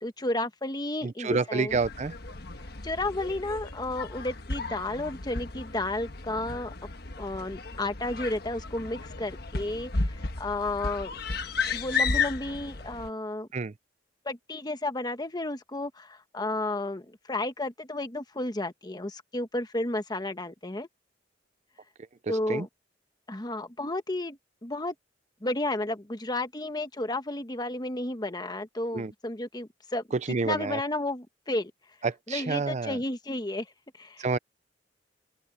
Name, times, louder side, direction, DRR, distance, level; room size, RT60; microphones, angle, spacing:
voice 1, 0.0-1.8 2.8-6.7 7.2-11.2 11.7-13.5 14.2-20.9 22.3-22.7 23.3-24.9 25.4-30.0 30.4-31.7 32.3-33.7 34.0-34.3, left 2 dB, 25° left, 1.3 m, -32 dB
voice 2, 1.0-2.1 13.5-13.7 22.2-22.7 28.9-29.1 30.1-30.8 32.0-33.0 34.2-34.4, right 4 dB, 40° right, 0.5 m, -29 dB
sound 1, 1.7-13.1, left 4 dB, 60° left, 1.4 m, -34 dB
open air
head